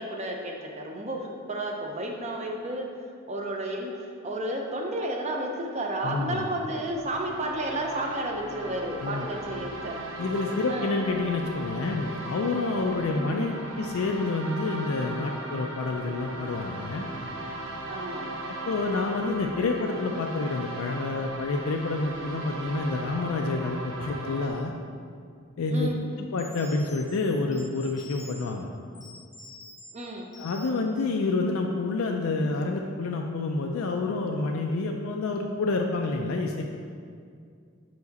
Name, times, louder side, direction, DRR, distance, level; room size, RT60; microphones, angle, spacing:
voice 1, 0.0-2.9 3.3-10.0 10.7-10.9 13.2-13.4 17.9-18.2 25.7-26.0 29.9-30.3, right 1 dB, 30° right, 1 dB, 0.6 m, -32 dB
voice 2, 6.0-6.5 9.0-9.3 10.2-17.1 18.5-24.7 25.6-25.9 26.2-28.7 30.4-36.8, left 3 dB, 80° left, 2 dB, 0.4 m, -28 dB
sound 1, 6.8-24.5, right 2 dB, 65° right, 0.9 m, -38 dB
sound 2, 25.7-25.9 26.4-28.5 28.9-29.9 30.3-30.9, left 3 dB, 15° left, 0.6 m, -47 dB
5.2 x 4.8 x 4.0 m, 2.3 s
head